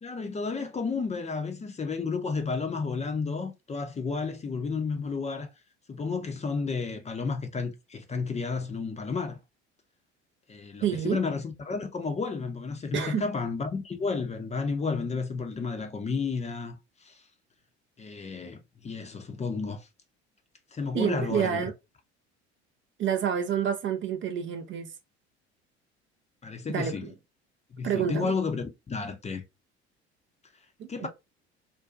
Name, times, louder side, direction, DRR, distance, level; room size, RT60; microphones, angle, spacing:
voice 1, 0.0-5.5 5.9-9.4 10.5-16.8 17.0-17.2 18.0-19.9 20.7-21.6 26.4-27.1 27.7-29.4 30.9-31.1, left 4 dB, 20° left, 0.6 m, -32 dB
voice 2, 10.8-11.2 12.9-13.2 20.9-21.7 23.0-24.9 26.7-27.1 27.8-28.3 30.8-31.1, right 8 dB, 35° right, 0.4 m, -28 dB
2.5 x 2.2 x 2.4 m
hypercardioid pair, 65°, 34 cm